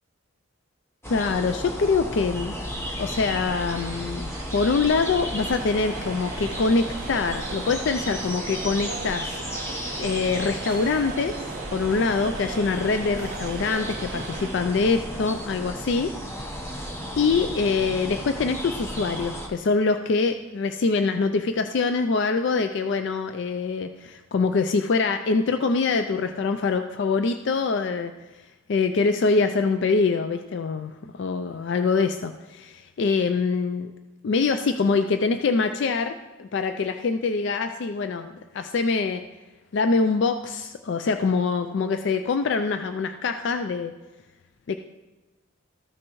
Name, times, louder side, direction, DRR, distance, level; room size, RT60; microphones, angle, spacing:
sound 1, 1.0-19.5, equal, 10° left, 0.9 m, -34 dB
voice 1, 1.1-2.6 3.0-9.3 10.0-16.1 16.4-16.5 17.2-28.1 28.7-32.6 33.0-33.9 34.2-39.2 39.7-43.9 44.7-44.8, left 4 dB, 55° left, 8 dB, 0.4 m, -24 dB
sound 2, 3.5-15.2, right 2 dB, 20° right, 2.3 m, -45 dB
sound 3, 5.3-14.5, right 5 dB, 40° right, 0.3 m, -39 dB
14.0 x 6.2 x 3.0 m, 1.2 s
head